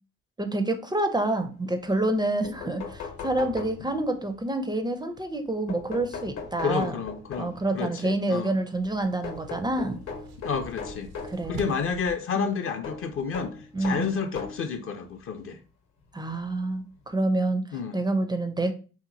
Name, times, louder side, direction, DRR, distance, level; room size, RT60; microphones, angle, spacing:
voice 1, 0.4-6.9 7.4-10.0 11.2-11.8 12.3-12.4 13.7-14.1 16.1-17.6 17.9-18.7, right 2 dB, 15° right, 0.4 m, -27 dB
sound 1, 2.1-2.2 2.4-4.2 5.7-7.7 9.2-11.4 12.8-14.7 15.6-15.7 17.0-17.1 17.4-17.5, left 5 dB, 60° left, 0.8 m, -39 dB
voice 2, 6.6-8.5 10.4-11.1 11.5-15.6 17.7-18.0, left 6 dB, 40° left, 0.5 m, -30 dB
sound 2, 8.7-12.1, right 3 dB, 75° right, 0.5 m, -45 dB
2.8 x 2.5 x 2.5 m
hypercardioid pair, 55°, 33 cm